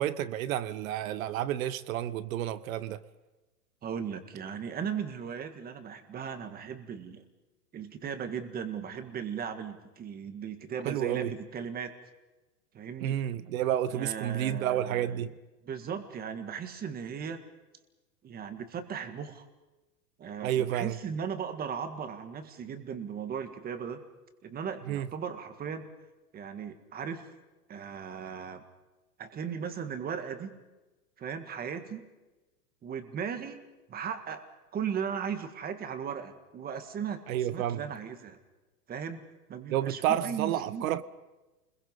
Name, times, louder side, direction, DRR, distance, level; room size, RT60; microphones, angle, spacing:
voice 1, 0.0-3.0 10.8-11.3 13.0-15.4 20.4-20.9 24.9-25.1 37.3-37.8 39.7-41.0, right 11 dB, 60° right, 1.1 m, -30 dB
voice 2, 3.8-7.2 7.7-11.9 12.7-13.2 13.9-15.3 15.7-17.4 18.2-19.5 20.2-24.0 24.4-25.9 26.3-27.3 27.7-28.6 29.2-30.6 31.2-32.0 32.8-33.6 33.9-34.4 34.7-38.4 38.9-39.2 39.5-41.0, right 7 dB, 20° right, 1.8 m, -37 dB
29.0 x 22.0 x 5.5 m
hypercardioid pair, 140°, 46 cm